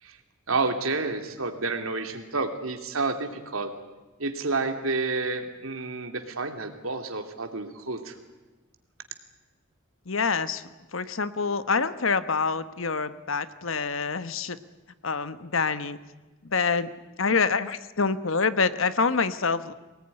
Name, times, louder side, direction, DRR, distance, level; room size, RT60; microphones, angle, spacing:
voice 1, 0.5-3.7 4.2-8.2, right 3 dB, 85° right, 6 dB, 2.7 m, -30 dB
voice 2, 10.1-10.6 10.9-14.6 15.0-16.0 16.4-16.9 17.2-19.7, left 5 dB, 70° left, 13 dB, 1.2 m, -26 dB
24.0 x 19.0 x 9.9 m, 1.2 s
head